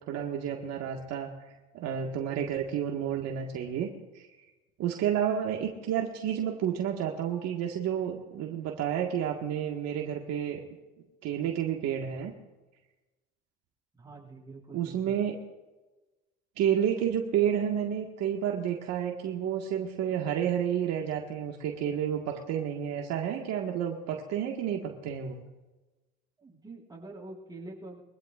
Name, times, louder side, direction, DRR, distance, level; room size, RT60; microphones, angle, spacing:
voice 1, 0.1-1.3 1.7-3.9 4.1-4.3 4.8-10.6 11.2-12.3 14.7-15.4 16.6-25.4, right 9 dB, 60° right, 1 dB, 1.8 m, -30 dB
voice 2, 14.0-15.2 26.4-28.0, right 2 dB, 15° right, -3 dB, 6.1 m, -45 dB
23.5 x 16.0 x 2.5 m, 1.1 s
supercardioid pair, 90°, 29 cm